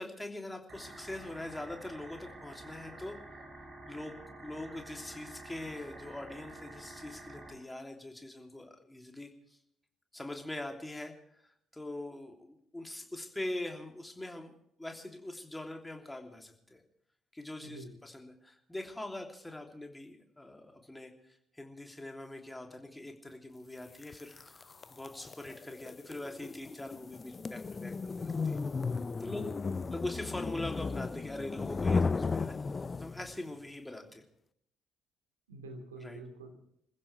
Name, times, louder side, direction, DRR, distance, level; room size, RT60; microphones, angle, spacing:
voice 1, 0.0-3.2 3.8-9.6 10.1-11.1 11.4-14.5 14.8-16.8 17.3-28.6 29.2-29.5 29.9-32.6 33.0-34.2 36.0-36.2, left 1 dB, 10° left, 3 dB, 3.1 m, -43 dB
sound 1, 0.7-7.5, right 2 dB, 35° right, 7.3 m, -49 dB
voice 2, 17.6-17.9 29.3-29.9 35.5-36.5, right 2 dB, 80° right, 4 dB, 2.5 m, -47 dB
sound 2, 24.0-33.4, left 4 dB, 30° left, 0.6 m, -35 dB
27.5 x 15.5 x 3.4 m, 0.69 s
figure-of-eight pair, 50°, 0 cm